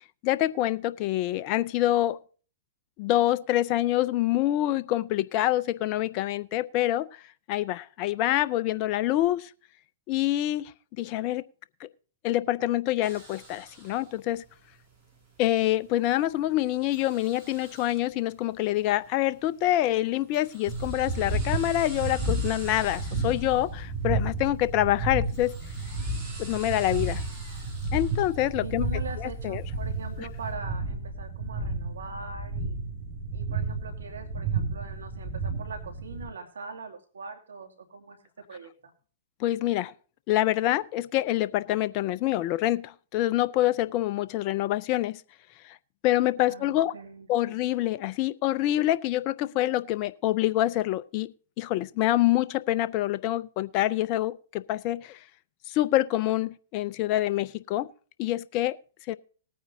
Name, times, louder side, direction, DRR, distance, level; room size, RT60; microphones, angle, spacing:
voice 1, 0.2-2.2 3.0-7.1 7.5-9.5 10.1-10.6 11.0-11.4 12.2-14.4 15.4-25.5 26.4-27.2 27.9-28.8 29.2-29.6 30.2-30.3 39.4-39.9 40.3-45.2 46.0-46.9 47.3-51.3 51.6-55.2 55.7-57.9 58.2-58.8 59.1-59.2, left 14 dB, 40° left, 0.5 m, -26 dB
sound 1, 13.0-30.5, right 2 dB, 20° right, 5.8 m, -50 dB
sound 2, 20.7-36.3, right 2 dB, 40° right, 6.8 m, -32 dB
voice 2, 28.6-32.8 33.3-38.2 38.5-38.7 46.5-47.6, right 4 dB, 80° right, 2.5 m, -42 dB
19.5 x 9.3 x 2.7 m
hypercardioid pair, 120°, 0 cm